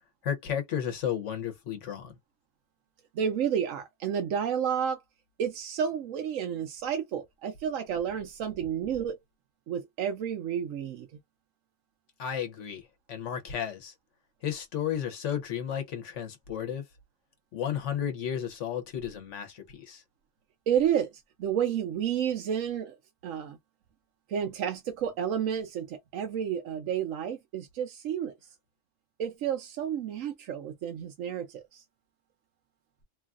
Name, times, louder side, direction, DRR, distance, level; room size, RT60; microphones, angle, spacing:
voice 1, 0.2-2.2 12.2-13.9 14.4-16.9 17.5-20.0, left 9 dB, 70° left, 1.1 m, -33 dB
voice 2, 3.1-5.0 5.4-9.2 9.7-11.1 20.7-23.0 23.2-23.6 24.3-28.3 29.2-31.8, right 8 dB, 85° right, 1.0 m, -31 dB
3.1 x 2.4 x 2.4 m
omnidirectional pair, 1.3 m